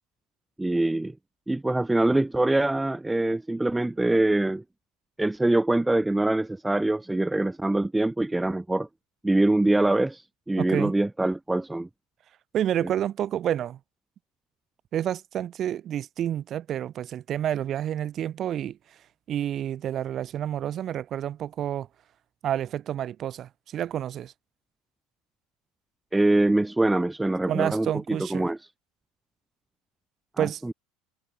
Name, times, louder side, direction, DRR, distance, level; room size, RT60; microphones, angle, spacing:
voice 1, 0.6-1.1 1.5-4.6 5.2-8.9 9.2-11.9 12.8-12.9 26.1-28.6 30.4-30.7, right 2 dB, 10° right, 0.7 m, -24 dB
voice 2, 10.6-10.9 12.5-13.8 14.9-18.8 19.3-21.9 22.4-24.3 27.5-28.5 30.4-30.6, right 10 dB, 45° right, 1.7 m, -29 dB
hypercardioid pair, 85°, 0 cm